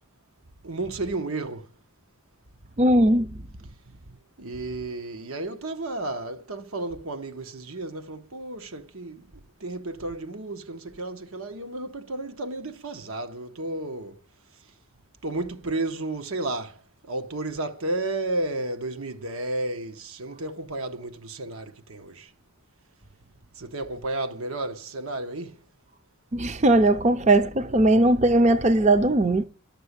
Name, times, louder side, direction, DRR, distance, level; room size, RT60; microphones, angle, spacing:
voice 1, 0.6-1.7 4.4-9.2 9.6-14.2 15.2-22.3 23.6-25.6, right 2 dB, 85° right, 1.3 m, -32 dB
voice 2, 2.8-3.4 26.3-29.4, right 1 dB, 30° right, 0.6 m, -19 dB
13.0 x 6.7 x 8.2 m
head